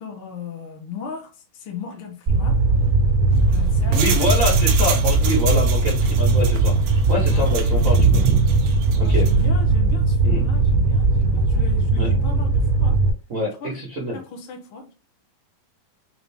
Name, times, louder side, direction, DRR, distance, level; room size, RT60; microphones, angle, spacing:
voice 1, 0.0-2.7 3.5-4.3 7.3-7.5 9.0-13.0 13.6-13.8 14.1-14.9, left 6 dB, 70° left, 1.2 m, -36 dB
Fire, 2.3-13.1, right 3 dB, 35° right, 1.4 m, -19 dB
sound 1, 3.3-9.5, right 7 dB, 80° right, 1.4 m, -27 dB
voice 2, 3.9-6.7 7.1-8.3 9.0-9.3 10.2-10.4 12.0-12.1 13.3-14.2, left 1 dB, 65° right, 0.8 m, -25 dB
5.8 x 2.7 x 3.4 m
omnidirectional pair, 4.1 m